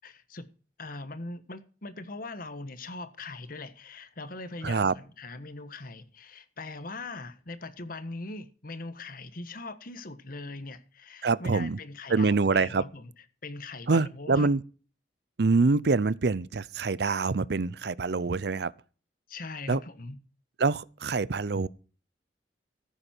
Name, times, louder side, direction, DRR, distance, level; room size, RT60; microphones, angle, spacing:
voice 1, 0.0-0.5 0.8-13.1 13.4-14.5 19.3-20.2, left 2 dB, 55° left, 1.5 m, -41 dB
voice 2, 4.6-4.9 11.2-11.8 12.1-12.8 13.9-14.6 15.4-18.7 19.7-19.8 20.6-21.7, right 4 dB, 65° right, 0.6 m, -25 dB
14.0 x 10.5 x 4.5 m
head